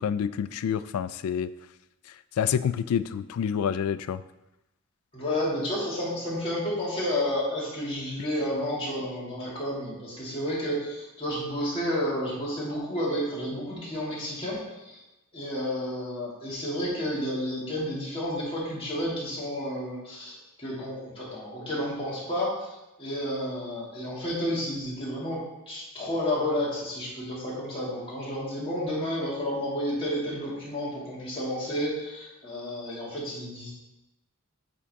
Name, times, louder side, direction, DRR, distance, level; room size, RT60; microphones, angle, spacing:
voice 1, 0.0-1.5 2.4-4.2, left 8 dB, 80° left, 15 dB, 0.3 m, -28 dB
voice 2, 5.1-15.0 15.3-22.7 23.0-33.7, left 1 dB, 25° left, -7 dB, 2.2 m, -31 dB
8.4 x 3.6 x 3.5 m, 0.95 s
head